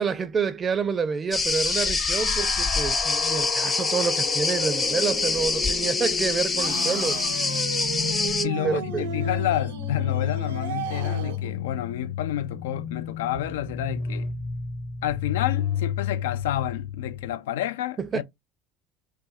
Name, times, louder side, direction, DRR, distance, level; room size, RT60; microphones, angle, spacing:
voice 1, 0.0-7.2 8.6-9.1 18.0-18.2, right 5 dB, 35° right, 0.4 m, -28 dB
sound 1, 1.3-17.3, left 8 dB, 60° left, 1.0 m, -32 dB
sound 2, 1.3-8.5, left 3 dB, 20° left, 0.6 m, -25 dB
sound 3, 6.6-11.5, right 7 dB, 85° right, 0.7 m, -35 dB
voice 2, 8.4-14.3 15.0-18.2, left 12 dB, 80° left, 0.3 m, -30 dB
2.5 x 2.2 x 4.0 m
hypercardioid pair, 80°, 0 cm